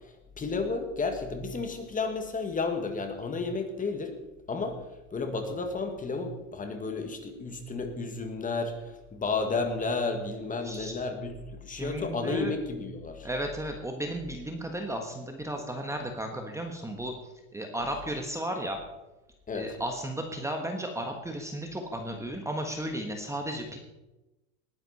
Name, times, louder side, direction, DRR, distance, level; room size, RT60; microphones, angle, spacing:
voice 1, 0.4-4.1 4.5-4.8 5.1-13.3 19.5-19.8, left 4 dB, 20° left, 6 dB, 1.9 m, -32 dB
voice 2, 10.6-10.9 11.8-12.6 13.2-17.1 17.5-18.8 19.5-23.8, right 1 dB, 5° right, 3 dB, 1.5 m, -34 dB
19.5 x 10.5 x 4.3 m, 1.0 s
supercardioid pair, 120°, 39 cm